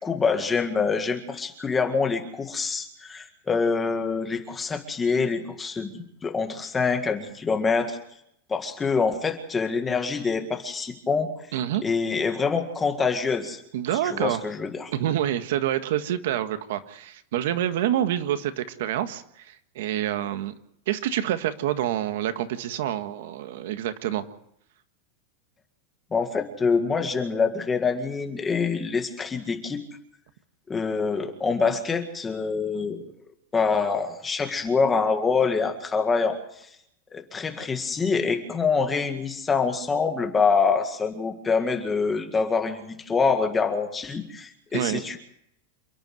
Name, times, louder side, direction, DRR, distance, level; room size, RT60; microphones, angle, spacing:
voice 1, 0.0-8.0 8.5-11.3 11.8-13.6 14.0-14.9 26.1-29.8 30.7-33.1 33.5-36.7 37.1-45.2, left 5 dB, 10° left, 5 dB, 1.9 m, -25 dB
voice 2, 11.5-11.8 13.7-14.4 14.9-20.5 20.9-24.2 44.7-45.0, right 11 dB, 65° right, 9 dB, 1.6 m, -27 dB
28.0 x 10.5 x 9.4 m, 0.74 s
supercardioid pair, 170°, 0 cm